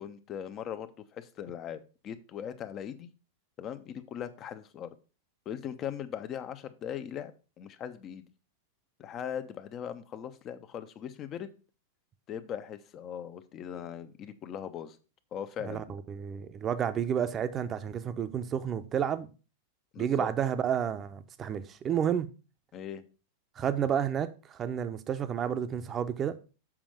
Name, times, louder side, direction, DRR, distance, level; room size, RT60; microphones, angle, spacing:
voice 1, 0.0-3.1 3.6-4.9 5.4-7.3 7.6-8.2 9.0-11.5 12.3-15.0 15.3-15.9 19.9-20.3 22.7-23.0, left 9 dB, 35° left, 0.9 m, -39 dB
voice 2, 15.6-19.3 20.0-22.3 23.6-26.4, right 8 dB, 30° right, 0.8 m, -31 dB
7.4 x 5.2 x 5.0 m
figure-of-eight pair, 95°, 0 cm